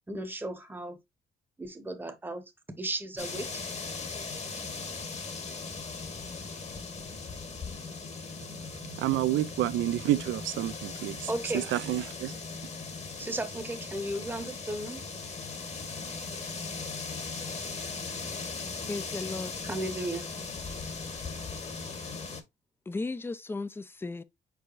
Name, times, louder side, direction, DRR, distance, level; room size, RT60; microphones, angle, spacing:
voice 1, 0.1-1.0 1.6-3.6 11.3-11.6 13.2-15.0 19.7-20.3, right 1 dB, 10° right, 0.9 m, -35 dB
sound 1, 3.2-22.4, left 4 dB, 35° left, 1.0 m, -39 dB
voice 2, 8.4-12.4, right 14 dB, 80° right, 0.5 m, -30 dB
voice 3, 18.8-19.5 22.9-24.2, left 3 dB, 10° left, 0.4 m, -35 dB
4.8 x 4.4 x 2.4 m
cardioid pair, 90°, 20 cm